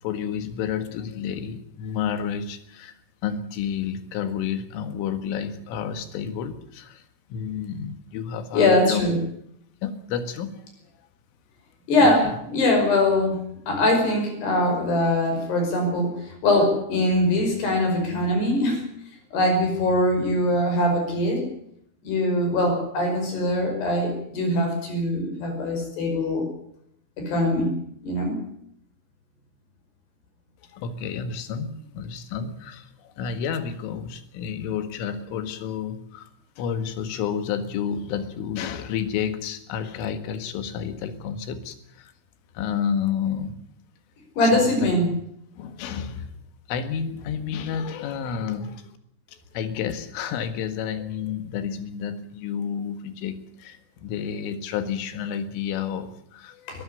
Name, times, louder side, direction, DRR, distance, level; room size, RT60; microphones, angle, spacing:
voice 1, 0.0-3.0 3.2-7.0 7.3-9.1 9.8-10.6 12.0-12.1 30.7-36.3 36.6-42.1 42.6-43.5 44.4-45.1 45.6-46.4 46.7-48.9 49.3-56.8, left 7 dB, 75° left, 10 dB, 4.2 m, -30 dB
voice 2, 8.5-9.2 11.9-13.4 13.7-18.8 19.3-21.5 22.0-26.5 27.2-27.7 28.0-28.4 44.4-45.1 56.7-56.8, left 1 dB, 55° left, 4 dB, 7.3 m, -22 dB
21.5 x 13.5 x 9.9 m, 0.72 s
omnidirectional pair, 5.9 m